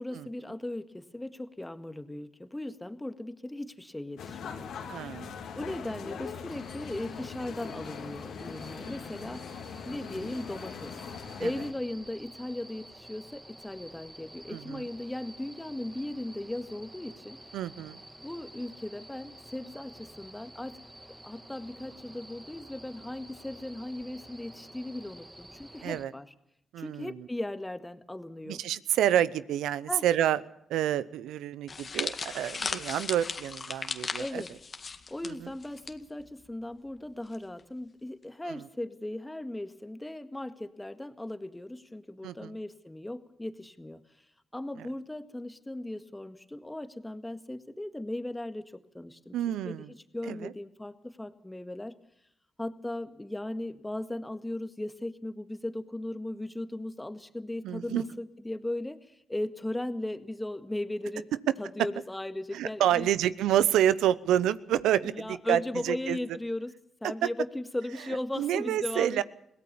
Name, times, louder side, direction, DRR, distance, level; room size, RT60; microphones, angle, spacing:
voice 1, 0.0-4.7 5.6-9.4 9.9-10.9 11.4-17.4 17.8-17.9 18.2-20.8 21.2-26.3 26.8-28.6 29.9-30.1 34.2-34.5 35.1-44.0 44.5-49.4 49.7-51.9 52.6-61.3 61.6-63.1 65.0-66.7 67.0-69.2, left 1 dB, 15° left, 10 dB, 1.9 m, -37 dB
sound 1, 4.2-11.7, left 6 dB, 80° left, 2.8 m, -41 dB
voice 2, 4.9-5.3 11.4-11.5 14.5-14.8 17.5-18.0 25.8-26.1 26.7-27.1 28.5-30.4 30.7-34.4 35.2-35.3 38.4-38.6 42.2-42.5 49.3-49.9 50.3-50.5 57.6-58.0 62.5-66.2 67.0-67.3 68.4-69.2, right 11 dB, 85° right, 17 dB, 0.7 m, -28 dB
sound 2, 6.5-26.0, right 1 dB, 15° right, 1.9 m, -50 dB
sound 3, 31.7-35.9 36.2-36.4 37.3-37.6, left 4 dB, 50° left, 1.9 m, -36 dB
22.5 x 17.0 x 7.0 m, 0.76 s
supercardioid pair, 50°, 0 cm